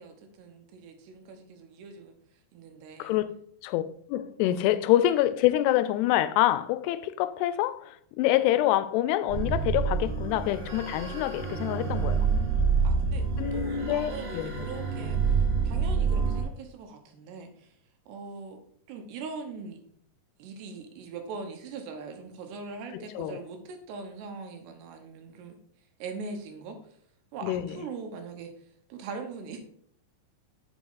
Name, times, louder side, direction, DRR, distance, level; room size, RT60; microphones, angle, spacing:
voice 1, 0.0-2.1 2.5-3.2 11.9-13.3 13.5-15.4 15.6-17.7 18.1-18.6 18.9-19.8 20.4-25.6 26.0-26.8 27.3-28.5 28.9-29.6, right 4 dB, 90° right, 3.2 m, -41 dB
voice 2, 3.0-3.4 3.6-3.8 4.1-12.3 13.4-14.7 22.9-23.4 27.4-27.8, left 13 dB, 90° left, 2.6 m, -26 dB
sound 1, 9.3-16.4, right 5 dB, 65° right, 1.2 m, -27 dB
7.1 x 6.1 x 3.9 m
omnidirectional pair, 4.7 m